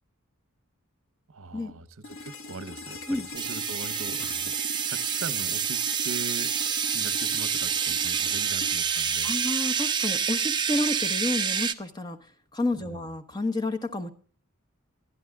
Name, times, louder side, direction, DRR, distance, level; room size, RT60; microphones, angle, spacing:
voice 1, 1.3-6.5 6.9-9.4 12.8-13.0, right 3 dB, 70° right, 14 dB, 0.9 m, -41 dB
sound 1, 2.0-10.0, left 3 dB, 75° left, 1.3 m, -42 dB
sound 2, 3.3-11.7, right 7 dB, 20° right, 0.6 m, -28 dB
voice 2, 9.2-12.2 12.5-14.1, left 2 dB, 20° left, 8 dB, 1.1 m, -30 dB
22.5 x 11.0 x 2.4 m, 0.39 s
head